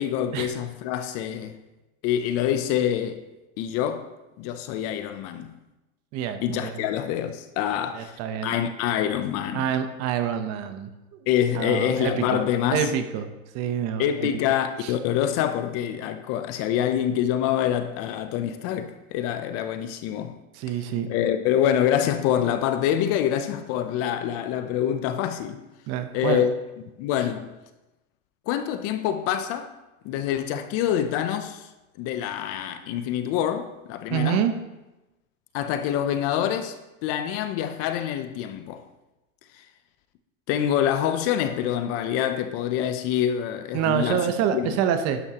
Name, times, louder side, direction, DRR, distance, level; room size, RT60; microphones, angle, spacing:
voice 1, 0.0-1.6 2.0-3.2 3.6-4.0 4.4-5.5 6.4-8.2 8.4-9.6 11.3-12.9 14.0-20.3 21.1-25.6 26.1-26.5 27.0-27.5 28.5-29.7 30.0-31.7 32.0-34.4 35.5-36.7 37.0-38.8 40.5-44.8, left 10 dB, 35° left, 0.6 m, -26 dB
voice 2, 6.1-6.8 7.9-8.6 9.5-10.9 11.5-12.5 12.7-13.3 13.5-14.3 14.8-14.9 20.5-21.1 25.9-26.5 34.1-34.5 43.7-45.2, right 8 dB, 35° right, 0.9 m, -26 dB
11.0 x 10.5 x 2.9 m
supercardioid pair, 140°, 42 cm